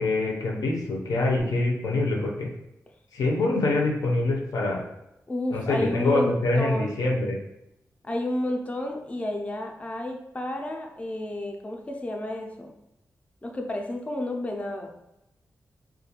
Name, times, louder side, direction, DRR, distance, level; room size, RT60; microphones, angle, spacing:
voice 1, 0.0-2.5 3.1-4.8 5.5-7.4, left 2 dB, 90° left, -1 dB, 0.6 m, -25 dB
voice 2, 5.3-7.1 8.0-12.7 13.4-14.9, left 1 dB, 20° left, 2 dB, 0.4 m, -31 dB
2.4 x 2.2 x 2.8 m, 0.88 s
cardioid pair, 80°, 6 cm